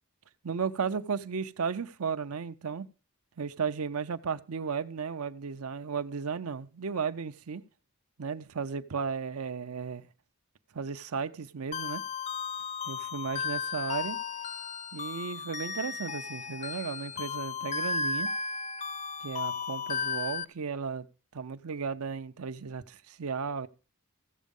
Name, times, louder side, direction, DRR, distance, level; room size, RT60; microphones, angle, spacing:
voice 1, 0.4-2.9 3.4-7.6 8.2-10.1 10.7-12.0 12.9-14.2 14.9-18.3 19.2-21.1 21.3-23.7, right 5 dB, 80° right, 0.6 m, -34 dB
sound 1, 11.7-20.4, left 5 dB, 30° left, 0.5 m, -35 dB
15.0 x 7.3 x 5.3 m
head